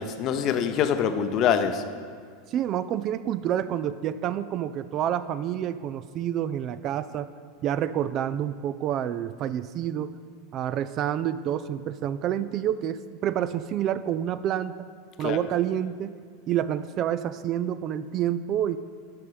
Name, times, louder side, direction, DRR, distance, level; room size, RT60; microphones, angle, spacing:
voice 1, 0.0-1.8 15.2-15.4, left 8 dB, 45° left, 9 dB, 0.7 m, -24 dB
voice 2, 2.5-7.3 7.6-10.1 10.5-14.9 15.2-16.2 16.5-18.8, right 10 dB, 40° right, 14 dB, 0.3 m, -28 dB
12.0 x 5.5 x 5.0 m, 2.1 s
figure-of-eight pair, 85°, 0 cm